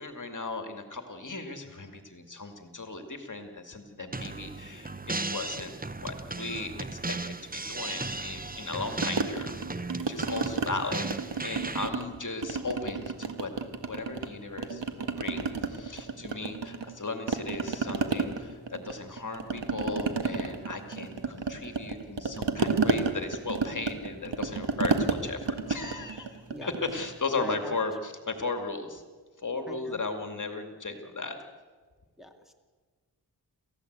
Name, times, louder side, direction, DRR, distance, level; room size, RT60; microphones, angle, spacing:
voice 1, 0.0-13.5 13.9-29.0 29.4-31.4, left 3 dB, 45° left, 6 dB, 2.3 m, -36 dB
sound 1, 4.1-11.9, right 3 dB, 20° right, 0.9 m, -36 dB
sound 2, 9.0-10.7 11.0-12.1 12.4-14.3 14.6-17.0 17.3-27.1, right 4 dB, 90° right, 1.8 m, -31 dB
voice 2, 27.4-27.8 29.7-30.0 32.2-32.5, right 1 dB, ahead, 1 dB, 2.4 m, -42 dB
28.0 x 15.0 x 8.1 m, 1.4 s
wide cardioid pair, 85°, 42 cm